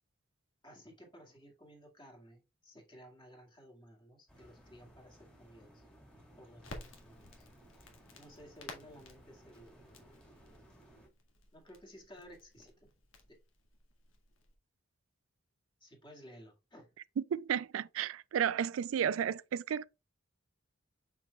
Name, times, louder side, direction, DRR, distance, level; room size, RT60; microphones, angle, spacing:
voice 1, 0.6-5.8 6.4-7.5 8.2-9.8 11.5-12.9 13.3-13.4 15.8-16.9, equal, 25° left, 2.0 m, -56 dB
sound 1, 4.3-11.1, equal, 5° left, 1.9 m, -60 dB
Crackle, 6.6-14.5, left 2 dB, 90° left, 1.8 m, -54 dB
voice 2, 17.3-19.8, right 8 dB, 85° right, 0.3 m, -33 dB
6.9 x 6.0 x 2.3 m
head